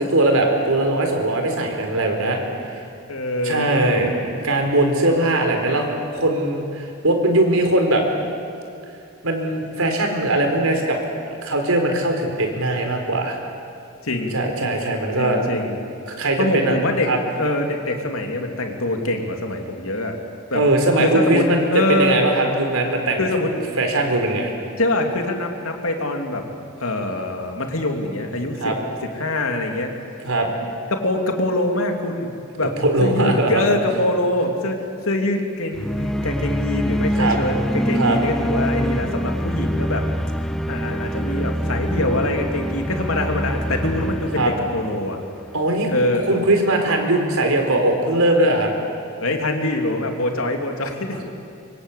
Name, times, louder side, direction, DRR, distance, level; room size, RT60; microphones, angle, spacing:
voice 1, 0.0-2.8 3.4-8.0 9.2-11.0 11.4-13.4 14.3-15.4 16.1-16.7 17.1-17.2 20.5-23.2 23.8-24.5 28.6-28.8 30.2-30.5 32.8-33.7 37.2-37.4 37.9-38.2 44.4-44.5 45.5-48.7, right 1 dB, 80° right, 3 dB, 4.3 m, -20 dB
voice 2, 3.1-4.2 14.0-14.3 15.2-15.8 16.4-17.1 17.3-20.2 20.5-20.6 21.0-21.4 21.7-22.2 23.2-23.8 24.8-26.4 26.8-28.6 29.1-29.9 30.9-32.3 32.6-32.7 33.0-34.8 35.0-40.0 40.7-44.4 44.7-45.2 45.9-46.4 49.2-51.2, left 1 dB, 75° left, 3 dB, 3.0 m, -24 dB
sound 1, 35.7-45.8, equal, ahead, 0.7 m, -25 dB
24.5 x 24.5 x 8.4 m, 2.5 s
head